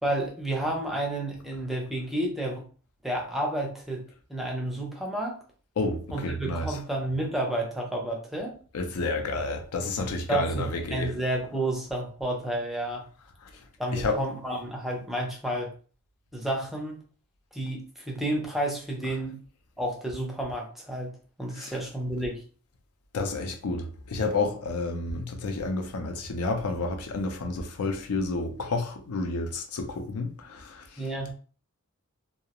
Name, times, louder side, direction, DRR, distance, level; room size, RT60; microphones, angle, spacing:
voice 1, 0.0-2.6 3.0-4.0 4.3-5.4 6.1-8.6 10.3-13.0 13.8-15.7 16.3-17.0 17.5-19.4 19.8-21.1 21.4-22.4 31.0-31.3, right 1 dB, ahead, 0.5 m, -31 dB
voice 2, 5.8-6.8 8.7-11.1 13.4-13.5 13.9-14.2 21.6-21.7 23.1-31.0, left 3 dB, 75° left, 0.5 m, -30 dB
2.3 x 2.0 x 2.8 m
head